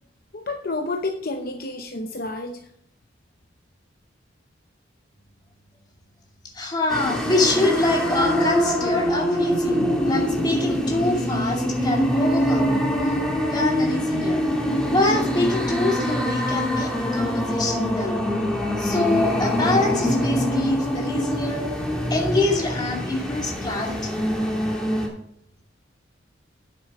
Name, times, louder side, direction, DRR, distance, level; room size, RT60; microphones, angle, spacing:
voice 1, 0.3-2.7, left 2 dB, 50° left, 4 dB, 0.8 m, -30 dB
voice 2, 6.5-12.9 13.5-14.4 14.9-18.2 18.8-21.7 22.1-24.3, left 2 dB, 25° left, -1 dB, 2.5 m, -25 dB
sound 1, 6.9-25.1, equal, 5° left, 2.6 m, -24 dB
9.6 x 7.8 x 4.9 m, 0.72 s
head